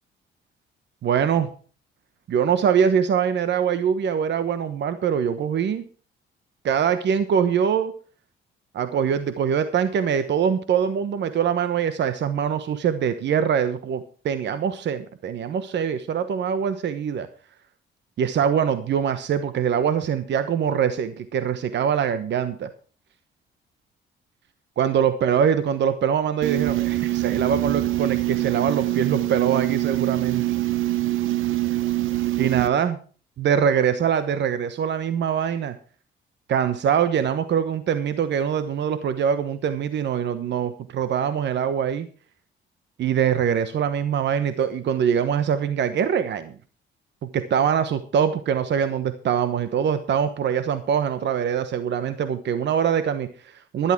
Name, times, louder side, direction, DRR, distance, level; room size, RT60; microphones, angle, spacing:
voice 1, 1.0-1.5 2.3-5.8 6.6-7.9 8.7-17.3 18.2-22.7 24.8-30.4 32.4-32.9 33.4-35.8 36.5-42.1 43.0-46.5 47.2-53.9, right 8 dB, 65° right, 11 dB, 1.1 m, -23 dB
sound 1, 26.4-32.7, right 16 dB, 80° right, 0.8 m, -24 dB
12.0 x 11.5 x 4.6 m, 0.39 s
cardioid pair, 90°, 20 cm